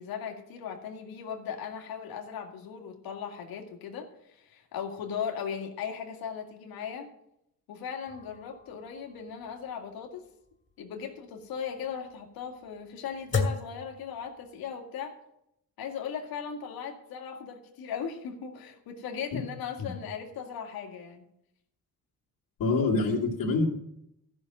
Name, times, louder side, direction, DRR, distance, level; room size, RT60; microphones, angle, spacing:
voice 1, 0.0-7.1 7.7-10.2 10.8-15.1 15.8-21.2, left 7 dB, 85° left, 4 dB, 2.1 m, -38 dB
sound 1, 8.1-14.7, left 4 dB, 35° left, 2.9 m, -37 dB
voice 2, 22.6-23.7, left 3 dB, 65° left, -4 dB, 2.9 m, -26 dB
13.5 x 6.4 x 7.7 m, 0.78 s
cardioid pair, 85°, 35 cm